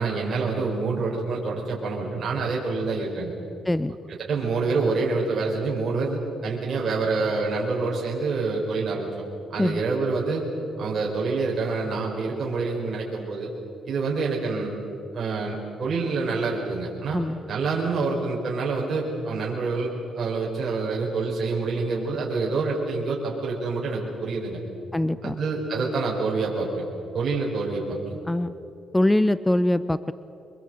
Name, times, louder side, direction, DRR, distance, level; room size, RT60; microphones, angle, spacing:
voice 1, 0.0-3.3 4.1-9.2 9.5-10.5 10.8-13.5 13.8-14.7 15.1-17.2 17.5-19.9 20.1-24.6 25.2-26.8 27.1-28.2, right 4 dB, 50° right, -3 dB, 4.7 m, -27 dB
voice 2, 3.6-4.0 9.6-9.8 17.1-17.4 24.9-25.4 28.3-28.5 28.9-30.1, left 1 dB, 10° left, 15 dB, 0.6 m, -23 dB
24.5 x 22.0 x 7.9 m, 2.7 s
cardioid pair, 90°, 0 cm